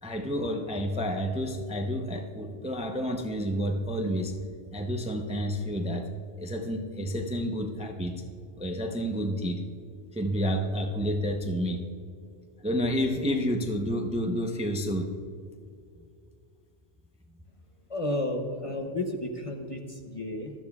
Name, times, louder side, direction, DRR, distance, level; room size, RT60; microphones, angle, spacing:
voice 1, 0.0-4.3 4.7-6.1 6.4-8.1 8.6-9.6 10.1-11.8 12.6-15.1, equal, 10° right, 3 dB, 0.6 m, -29 dB
voice 2, 17.9-20.5, left 1 dB, 35° left, 3 dB, 0.7 m, -32 dB
16.0 x 12.5 x 2.3 m, 2.3 s
omnidirectional pair, 1.1 m